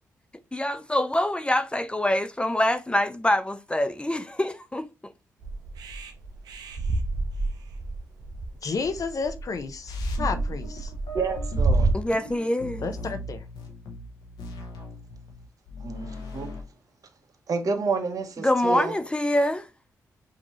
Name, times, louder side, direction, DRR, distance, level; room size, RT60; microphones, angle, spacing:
voice 1, 0.5-5.1 11.9-12.9 18.4-19.7, left 1 dB, 15° left, 0.4 m, -25 dB
sound 1, 5.4-11.9, right 2 dB, 80° right, 0.6 m, -28 dB
voice 2, 8.6-10.9 12.8-13.4, left 4 dB, 55° left, 0.6 m, -31 dB
sound 2, 9.9-16.6, left 2 dB, 80° left, 0.9 m, -39 dB
voice 3, 11.1-11.9 15.8-16.5 17.5-18.9, right 4 dB, 55° right, 0.9 m, -29 dB
5.1 x 2.7 x 3.0 m
supercardioid pair, 45°, 7 cm